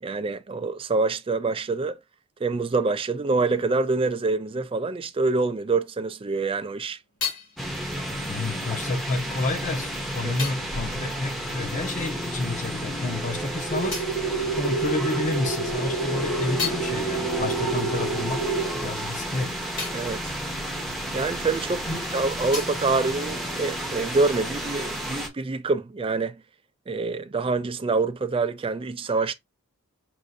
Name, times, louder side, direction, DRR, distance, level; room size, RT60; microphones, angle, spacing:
voice 1, 0.0-2.0 2.4-7.0 10.2-10.3 19.9-20.3 21.1-26.4 26.9-29.3, right 3 dB, 25° right, 0.4 m, -26 dB
sound 1, 6.5-12.4 12.6-15.3 15.7-21.8 22.0-24.1, left 5 dB, 55° left, 2.0 m, -39 dB
sound 2, 7.6-25.3, equal, ahead, 0.7 m, -32 dB
voice 2, 8.3-14.0 14.5-18.5 18.8-19.5 21.8-22.0, left 2 dB, 35° left, 0.9 m, -30 dB
sound 3, 13.7-18.7, right 4 dB, 80° left, 0.9 m, -29 dB
6.2 x 2.5 x 2.5 m
head